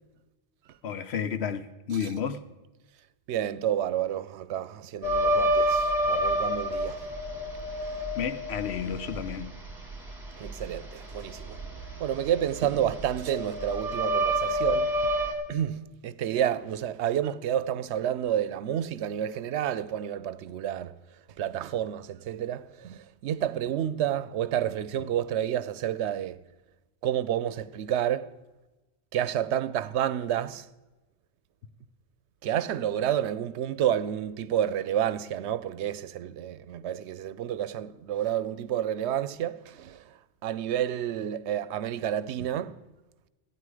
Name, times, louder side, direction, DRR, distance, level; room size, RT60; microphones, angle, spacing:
voice 1, 0.8-2.4 8.1-9.5, left 7 dB, 75° left, 1.0 m, -31 dB
voice 2, 3.3-7.0 10.4-11.6 12.0-14.9 15.5-20.9 21.4-26.4 27.0-28.3 29.1-30.6 32.4-40.0 40.4-42.7, right 10 dB, 85° right, 0.9 m, -29 dB
sound 1, 5.0-15.3, equal, 20° right, 1.6 m, -29 dB
14.0 x 9.6 x 4.8 m
omnidirectional pair, 1.1 m